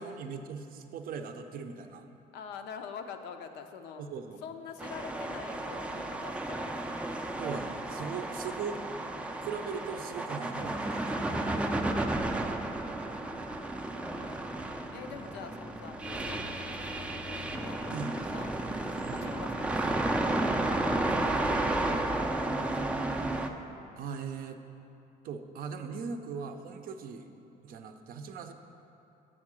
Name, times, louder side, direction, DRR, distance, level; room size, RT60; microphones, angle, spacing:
voice 1, 0.0-2.1 4.0-4.4 7.4-8.8 9.4-11.7 13.4-13.6 15.1-15.3 17.9-18.2 19.0-19.3 24.0-24.6 25.2-27.3 27.6-28.5, right 5 dB, 60° right, 7 dB, 0.5 m, -39 dB
voice 2, 2.3-4.1 4.4-7.0 8.5-9.3 11.8-13.3 13.9-14.4 14.9-18.5 19.1-22.0, left 6 dB, 85° left, 6 dB, 0.5 m, -47 dB
sound 1, 4.8-23.5, right 2 dB, 5° right, 0.3 m, -33 dB
7.6 x 3.7 x 6.1 m, 2.9 s
cardioid pair, 110°, 17 cm